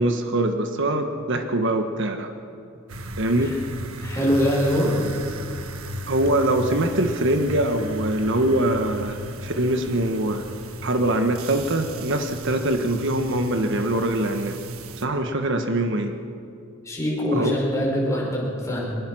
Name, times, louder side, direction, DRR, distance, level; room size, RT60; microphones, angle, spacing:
voice 1, 0.0-2.3 3.2-3.6 6.1-10.4 10.8-14.6 15.0-16.1 17.3-17.6, right 1 dB, 60° right, 6 dB, 1.3 m, -23 dB
sound 1, 2.9-15.0, right 1 dB, 85° right, 1.5 m, -35 dB
voice 2, 4.0-5.0 16.8-18.9, equal, 15° left, -3 dB, 4.8 m, -23 dB
23.0 x 21.0 x 6.3 m, 2.6 s
head